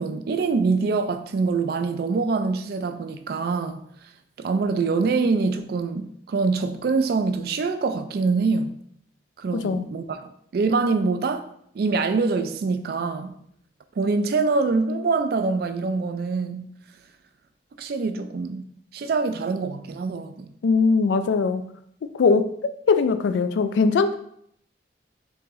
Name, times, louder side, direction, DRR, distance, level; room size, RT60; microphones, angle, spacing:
voice 1, 0.0-3.8 4.4-8.8 9.4-11.4 11.7-13.4 14.0-16.7 17.8-18.6 18.9-20.5, right 4 dB, 60° right, 0.3 m, -24 dB
voice 2, 9.5-9.9 20.6-21.6 22.1-24.1, left 4 dB, 90° left, 0.3 m, -21 dB
4.5 x 2.7 x 3.1 m
head